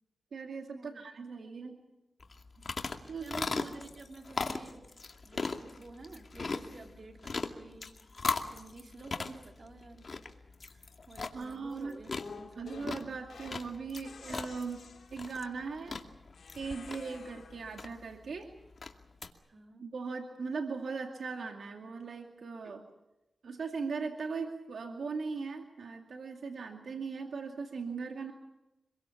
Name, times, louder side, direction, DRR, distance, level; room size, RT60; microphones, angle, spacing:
voice 1, 0.3-1.8 3.1-3.3 11.3-11.9 12.6-16.0 16.6-18.5 19.8-22.8 23.4-28.3, right 4 dB, 80° right, 3 dB, 2.4 m, -39 dB
sound 1, 2.2-19.3, left 4 dB, 55° left, 2.4 m, -39 dB
voice 2, 3.2-7.9 8.3-10.1 10.6-13.2 17.2-17.3 19.5-19.9, right 3 dB, 55° right, 3 dB, 3.4 m, -50 dB
sound 2, 12.1-13.7 14.0-15.5 16.3-17.7, left 5 dB, 80° left, 3.1 m, -51 dB
26.5 x 22.5 x 7.3 m, 0.94 s
cardioid pair, 65°, 0 cm